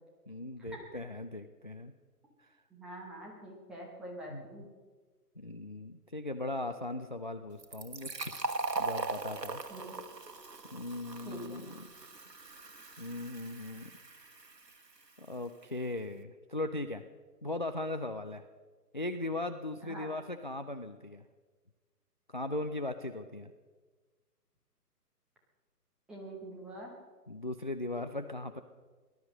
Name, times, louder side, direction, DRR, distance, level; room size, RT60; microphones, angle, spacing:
voice 1, 0.3-1.9 2.4-2.6 4.3-4.4 5.4-8.3 8.8-9.6 10.7-11.8 13.0-13.9 15.2-17.0 17.4-18.4 18.9-21.2 22.3-23.5 27.3-28.6, left 2 dB, 30° left, 9 dB, 0.4 m, -38 dB
voice 2, 2.7-4.7 9.7-9.9 11.2-11.6 19.8-20.1 26.1-26.9, right 1 dB, ahead, -3 dB, 0.8 m, -45 dB
Fill (with liquid), 7.6-15.0, right 3 dB, 85° right, 1.5 m, -40 dB
18.5 x 12.0 x 6.4 m, 1.4 s
figure-of-eight pair, 135°, 48 cm